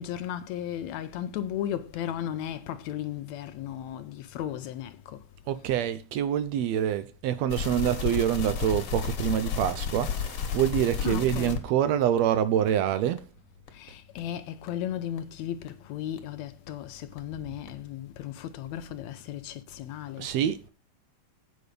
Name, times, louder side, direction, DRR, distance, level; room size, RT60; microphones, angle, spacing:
voice 1, 0.0-5.2 11.0-11.6 13.7-20.3, left 11 dB, 75° left, 1.8 m, -35 dB
voice 2, 5.5-13.2 20.2-20.7, right 10 dB, 80° right, 1.5 m, -26 dB
sound 1, 7.5-11.7 12.2-12.3 12.7-12.8 13.2-13.3 13.7-13.8 14.2-14.3 14.7-14.8 15.2-15.3 15.7-15.8 16.2-16.3 16.7-16.8 17.2-17.3 17.7-17.8, left 7 dB, 55° left, 2.0 m, -32 dB
8.5 x 5.1 x 6.5 m
omnidirectional pair, 3.5 m